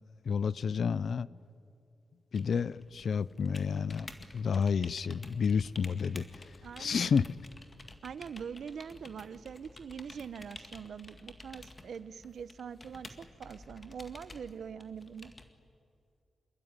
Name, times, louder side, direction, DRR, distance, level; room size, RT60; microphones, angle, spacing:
voice 1, 0.3-1.3 2.3-4.1 4.3-6.5 6.8-7.3, left 6 dB, 60° left, 0.6 m, -30 dB
sound 1, 2.3-15.5, left 2 dB, 25° left, 2.0 m, -52 dB
voice 2, 6.6-7.1 8.0-15.3, right 7 dB, 75° right, 1.0 m, -43 dB
27.0 x 22.0 x 9.8 m
wide cardioid pair, 140°, 0 cm